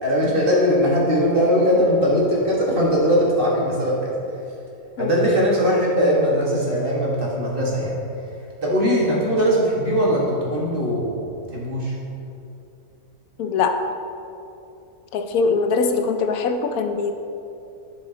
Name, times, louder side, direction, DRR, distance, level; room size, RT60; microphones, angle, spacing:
voice 1, 0.0-4.1 5.0-7.9 8.6-11.2 11.5-11.9, equal, 40° right, -5 dB, 1.8 m, -20 dB
voice 2, 13.4-13.8 15.1-17.2, left 4 dB, 90° left, 6 dB, 1.1 m, -22 dB
11.5 x 5.5 x 3.9 m, 2.7 s
omnidirectional pair, 1.5 m